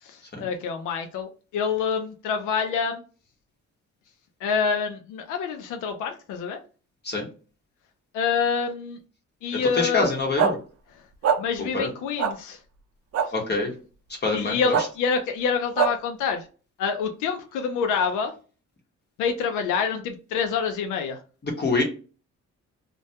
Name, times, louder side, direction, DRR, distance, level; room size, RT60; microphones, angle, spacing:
voice 1, 0.0-3.0 4.4-6.6 8.1-9.0 9.4-10.1 11.4-12.6 14.3-16.5 16.8-18.3 19.2-21.2, left 6 dB, 90° left, 6 dB, 0.5 m, -27 dB
voice 2, 9.7-10.6 11.7-11.9 13.3-13.7 14.2-14.8 21.4-21.8, left 3 dB, 35° left, 1 dB, 0.9 m, -25 dB
sound 1, 10.4-10.5 11.2-11.4 12.2-12.3 13.1-13.3 14.7-14.8 15.8-15.9, right 7 dB, 55° right, 0.5 m, -21 dB
2.2 x 2.2 x 2.7 m, 0.36 s
cardioid pair, 90°, 30 cm